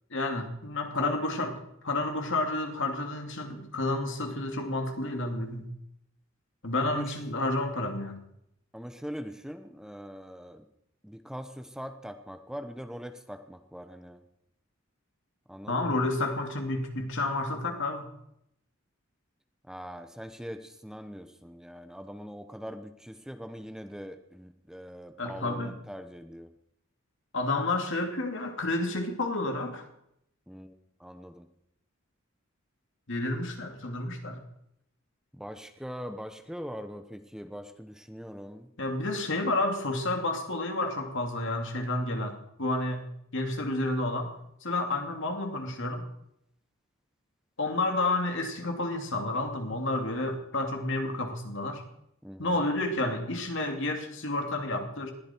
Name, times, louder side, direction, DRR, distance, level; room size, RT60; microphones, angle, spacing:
voice 1, 0.1-1.5 1.8-5.7 6.6-8.2 15.7-18.1 25.2-25.7 27.3-29.8 33.1-34.4 38.8-43.0 43.3-44.3 44.6-46.0 47.6-51.8 52.4-55.1, left 2 dB, 65° left, 3 dB, 2.7 m, -30 dB
voice 2, 8.7-10.6 11.0-14.2 15.5-16.1 19.7-26.5 30.5-30.7 31.0-31.5 35.3-38.7 52.2-52.6, equal, 5° right, 7 dB, 0.9 m, -42 dB
20.5 x 14.5 x 4.5 m, 0.76 s
head